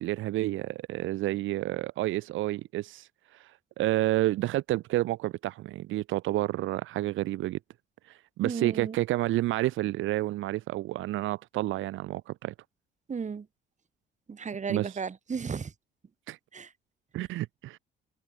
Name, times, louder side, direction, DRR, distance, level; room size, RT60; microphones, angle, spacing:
voice 1, 0.0-3.5 3.8-7.6 8.1-12.5 14.7-14.9 16.3-16.4 17.1-17.8, right 16 dB, 90° right, 1.2 m, -30 dB
voice 2, 8.4-9.0 13.1-13.5 14.3-15.7 16.5-16.7, right 6 dB, 35° right, 2.4 m, -34 dB
cardioid pair, 90°, 20 cm